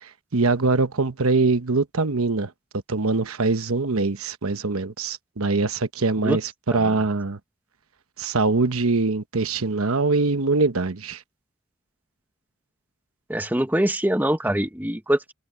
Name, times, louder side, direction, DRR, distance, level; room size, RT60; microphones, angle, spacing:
voice 1, 0.0-2.5 2.9-7.4 8.2-11.2, right 3 dB, 85° right, 1.1 m, -23 dB
voice 2, 13.3-15.3, right 1 dB, 10° right, 1.1 m, -23 dB
head